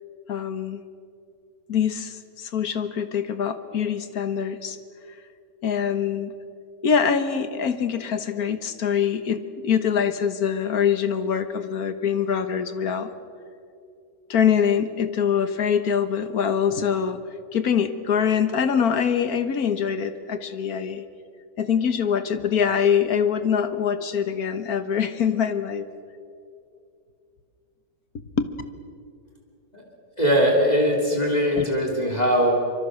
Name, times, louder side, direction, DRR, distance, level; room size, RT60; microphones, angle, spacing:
voice 1, 0.3-0.8 1.7-4.8 5.6-6.3 6.8-13.1 14.3-17.2 17.5-21.0 21.6-25.8 28.4-28.5 31.5-31.7, left 7 dB, 55° left, 10 dB, 1.6 m, -24 dB
voice 2, 30.2-32.5, equal, 20° left, 1 dB, 3.1 m, -21 dB
25.0 x 24.0 x 6.4 m, 2.4 s
omnidirectional pair, 2.0 m